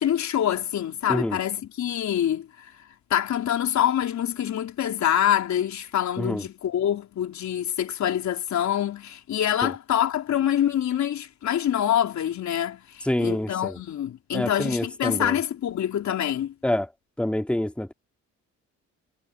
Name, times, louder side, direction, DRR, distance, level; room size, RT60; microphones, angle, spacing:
voice 1, 0.0-2.7 3.1-16.5, left 10 dB, 65° left, 4.1 m, -25 dB
voice 2, 13.0-13.8 14.3-15.4 16.6-16.9 17.2-17.9, left 1 dB, 5° left, 2.5 m, -26 dB
cardioid pair, 90°, 30 cm